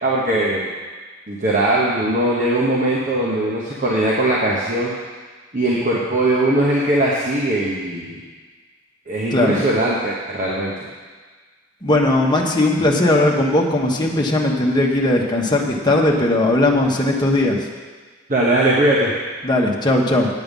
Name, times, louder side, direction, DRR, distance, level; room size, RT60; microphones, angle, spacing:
voice 1, 0.0-0.7 1.3-4.9 5.5-8.2 9.1-10.7 18.3-19.1, right 1 dB, 40° right, -5 dB, 1.2 m, -20 dB
voice 2, 11.8-17.7 19.4-20.3, left 1 dB, 20° left, -1 dB, 1.2 m, -18 dB
8.7 x 8.4 x 5.4 m, 1.4 s
head